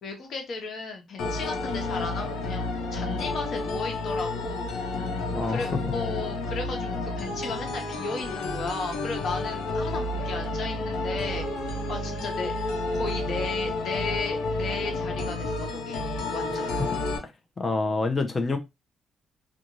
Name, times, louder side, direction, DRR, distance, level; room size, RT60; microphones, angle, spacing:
voice 1, 0.0-5.0 5.5-11.5 11.9-16.0 16.3-16.7, left 4 dB, 60° left, 1.1 m, -35 dB
sound 1, 1.2-17.2, left 2 dB, 85° left, 0.7 m, -30 dB
voice 2, 5.3-5.7 16.8-17.0 17.6-18.6, left 3 dB, 30° left, 0.7 m, -27 dB
2.5 x 2.5 x 3.0 m
cardioid pair, 90°, 0 cm